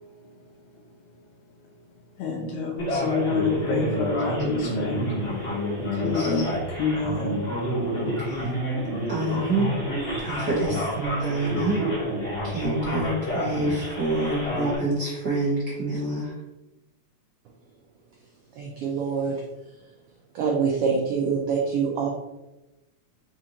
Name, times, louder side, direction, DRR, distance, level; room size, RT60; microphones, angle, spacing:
voice 1, 2.2-5.1 6.0-6.5 6.8-7.8, left 4 dB, 80° left, -4 dB, 2.0 m, -27 dB
Male speech man speaking, 2.8-14.8, equal, 40° left, 0.9 m, -29 dB
voice 2, 6.0-6.3 8.2-8.5 9.1-9.7 10.2-11.8 12.4-16.3, right 2 dB, 65° right, -8 dB, 0.9 m, -27 dB
voice 3, 18.6-19.3 20.3-22.1, right 5 dB, 90° right, -1 dB, 1.3 m, -25 dB
4.9 x 2.9 x 3.8 m, 1.0 s
omnidirectional pair, 3.3 m